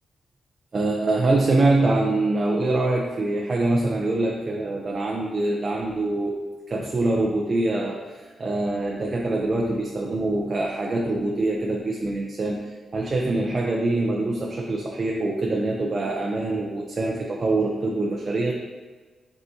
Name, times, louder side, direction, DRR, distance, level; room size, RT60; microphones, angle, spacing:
voice 1, 0.7-6.4 6.7-18.5, right 2 dB, 30° right, 0 dB, 0.5 m, -24 dB
8.3 x 4.7 x 2.7 m, 1.3 s
wide cardioid pair, 180°, 0 cm